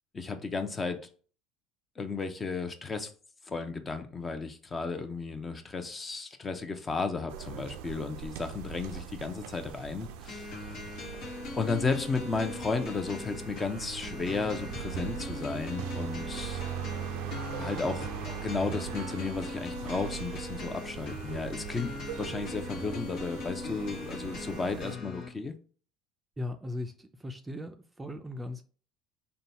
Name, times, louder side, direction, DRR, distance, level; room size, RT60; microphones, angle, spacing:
voice 1, 0.1-1.0 2.0-3.1 3.5-10.5 11.6-16.6 17.6-21.9 22.2-25.5, left 4 dB, 25° left, 0.7 m, -34 dB
sound 1, 7.3-25.0, right 11 dB, 75° right, 0.4 m, -41 dB
sound 2, 10.3-25.3, left 4 dB, 60° left, 1.3 m, -40 dB
voice 2, 26.4-28.6, left 2 dB, 15° right, 0.5 m, -38 dB
3.9 x 2.3 x 4.1 m
hypercardioid pair, 85°, 0 cm